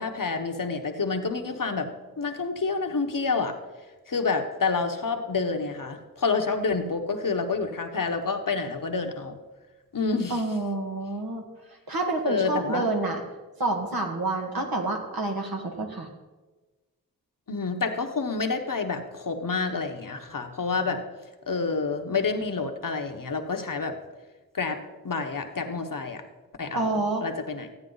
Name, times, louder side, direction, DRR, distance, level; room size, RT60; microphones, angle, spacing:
voice 1, 0.0-1.9 2.2-3.6 4.1-9.4 9.9-10.4 12.2-12.9 17.5-21.0 21.5-24.0 24.5-26.2 26.6-27.7, left 4 dB, 65° left, 5 dB, 1.1 m, -28 dB
voice 2, 10.3-11.4 11.9-13.2 13.6-16.1 26.7-27.2, right 2 dB, 75° right, 2 dB, 1.7 m, -28 dB
15.0 x 8.9 x 4.0 m, 1.2 s
wide cardioid pair, 50°, 36 cm